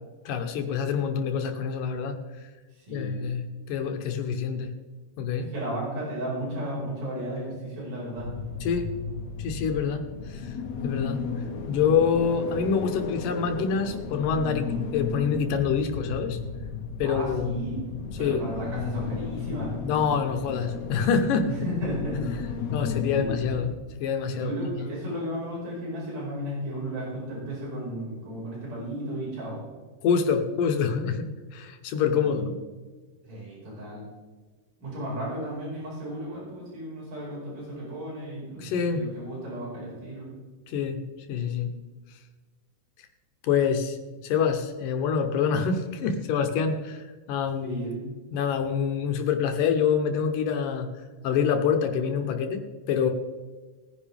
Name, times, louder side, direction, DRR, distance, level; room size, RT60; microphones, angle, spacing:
voice 1, 0.3-2.5 2.9-4.7 5.2-5.5 8.6-8.9 9.4-10.6 10.8-11.2 11.7-16.4 17.0-17.5 18.2-18.4 19.8-21.5 22.7-23.7 24.0-24.5 30.0-32.5 38.6-39.1 40.7-41.0 41.3-41.7 43.4-44.0 44.2-47.8 48.3-50.9 51.2-52.6 52.9-53.1, left 6 dB, 80° left, 5 dB, 2.6 m, -26 dB
voice 2, 2.7-3.2 5.4-8.3 17.0-17.8 18.2-19.7 21.5-22.3 22.5-22.6 23.1-23.4 24.4-29.6 32.2-32.4 33.2-34.1 34.8-40.3 47.6-48.1, right 1 dB, 75° right, -6 dB, 6.9 m, -34 dB
sound 1, 8.2-23.7, left 5 dB, 65° left, 2.2 m, -34 dB
20.0 x 10.5 x 3.5 m, 1.4 s
omnidirectional pair, 3.8 m